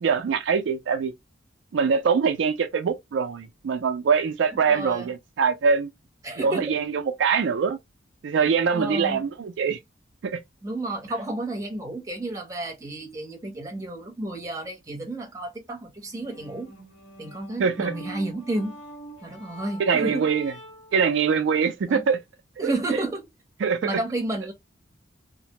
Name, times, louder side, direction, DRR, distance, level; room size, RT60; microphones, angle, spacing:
voice 1, 0.0-1.1 1.7-5.9 6.4-7.8 8.2-9.8 10.2-10.4 17.6-17.9 19.8-20.5 20.9-22.2 22.6-23.0 23.6-23.9, right 6 dB, 70° right, 0.4 m, -23 dB
voice 2, 4.6-5.1 6.2-6.7 8.7-9.2 10.6-16.7 17.2-18.8 19.2-20.2 21.9-22.1 22.6-23.3 23.8-24.5, right 2 dB, 15° right, 0.7 m, -31 dB
sound 1, 16.0-21.0, right 1 dB, 90° left, 1.4 m, -45 dB
2.5 x 2.1 x 2.8 m
head